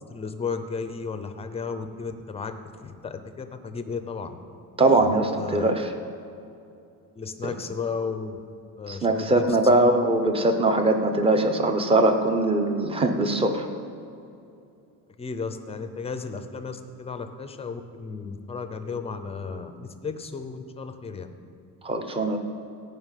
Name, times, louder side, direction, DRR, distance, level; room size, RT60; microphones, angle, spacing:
voice 1, 0.1-2.5 2.8-4.4 5.0-5.7 7.1-8.4 8.8-9.5 9.7-9.9 15.2-21.3, left 5 dB, 15° left, 8 dB, 0.6 m, -34 dB
voice 2, 4.8-5.9 8.9-13.7 21.8-22.4, right 2 dB, 15° right, 6 dB, 0.8 m, -21 dB
15.0 x 5.6 x 9.1 m, 2.6 s
cardioid pair, 170°, 38 cm